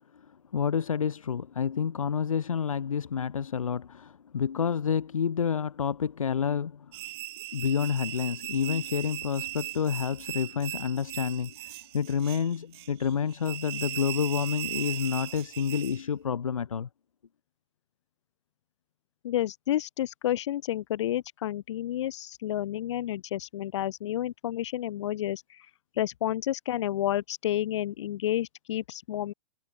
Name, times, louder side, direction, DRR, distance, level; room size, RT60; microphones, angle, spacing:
voice 1, 0.1-6.9 7.5-16.9, left 7 dB, 75° left, 5.1 m, -29 dB
sound 1, 6.9-16.0, right 19 dB, 45° right, 2.2 m, -38 dB
voice 2, 19.2-25.7 26.0-29.3, left 12 dB, 60° left, 2.3 m, -30 dB
hypercardioid pair, 125°, 17 cm